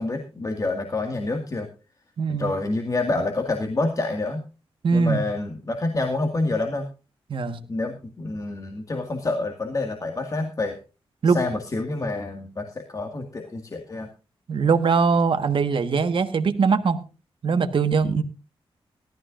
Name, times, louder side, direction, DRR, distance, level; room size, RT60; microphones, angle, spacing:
voice 1, 0.0-1.7 2.3-4.4 4.9-6.9 7.7-10.8 11.3-14.1, left 2 dB, 35° left, 4 dB, 2.0 m, -27 dB
voice 2, 2.2-2.5 4.8-5.2 7.3-7.6 11.2-11.4 14.5-17.0 17.4-18.2, right 5 dB, 60° right, 8 dB, 1.5 m, -21 dB
18.0 x 13.5 x 2.6 m, 0.33 s
wide cardioid pair, 100°, 10 cm